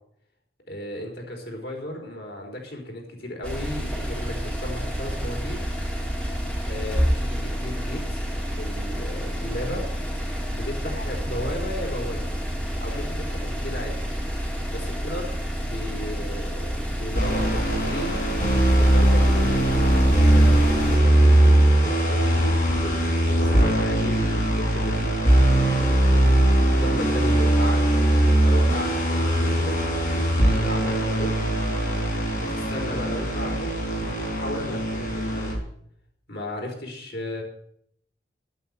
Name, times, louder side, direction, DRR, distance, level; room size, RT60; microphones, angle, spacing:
voice 1, 0.7-5.6 6.7-8.3 8.6-9.9 10.5-12.3 12.8-14.0 14.7-15.3 15.6-18.2 18.8-19.6 19.9-21.7 22.1-25.1 26.7-27.8 28.4-29.8 30.1-31.3 32.3-33.7 34.0-35.5 36.3-37.4, left 1 dB, 70° left, 0 dB, 4.0 m, -35 dB
sound 1, 3.4-21.0, equal, 5° left, 2.2 m, -29 dB
sound 2, 17.1-35.5, right 1 dB, 50° left, 4.4 m, -20 dB
11.5 x 9.2 x 8.0 m, 0.70 s
head